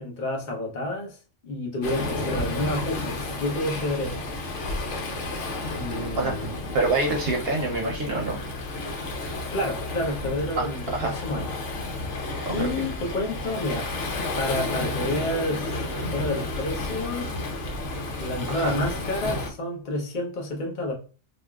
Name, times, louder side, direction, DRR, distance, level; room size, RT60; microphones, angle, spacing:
voice 1, 0.0-4.2 5.7-6.5 9.5-11.5 12.5-13.9 14.3-17.3 18.2-20.9, left 1 dB, 45° left, 0.9 m, -30 dB
Waves surf, 1.8-19.5, left 2 dB, 90° left, 1.0 m, -31 dB
voice 2, 6.2-8.4 10.6-10.7 10.9-11.1 12.5-12.7 18.5-18.8, right 2 dB, 60° right, 0.8 m, -26 dB
3.5 x 2.5 x 2.3 m
omnidirectional pair, 1.2 m